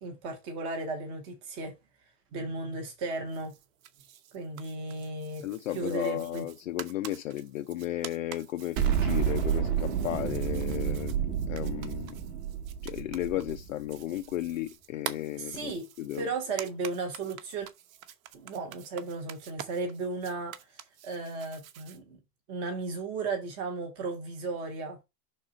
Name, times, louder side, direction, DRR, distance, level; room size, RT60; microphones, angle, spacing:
voice 1, 0.0-1.7 2.3-3.5 4.3-5.4 5.7-6.5 15.4-15.9 16.2-17.7 18.3-20.6 21.0-22.2 22.5-25.0, right 3 dB, 10° right, 0.6 m, -35 dB
sound 1, 3.3-22.0, right 10 dB, 55° right, 0.9 m, -47 dB
voice 2, 5.4-11.2 11.5-12.2 12.8-16.3, left 13 dB, 55° left, 0.5 m, -34 dB
Explosion, 8.8-13.9, right 9 dB, 30° right, 1.0 m, -30 dB
5.9 x 4.1 x 4.9 m
supercardioid pair, 180°, 48 cm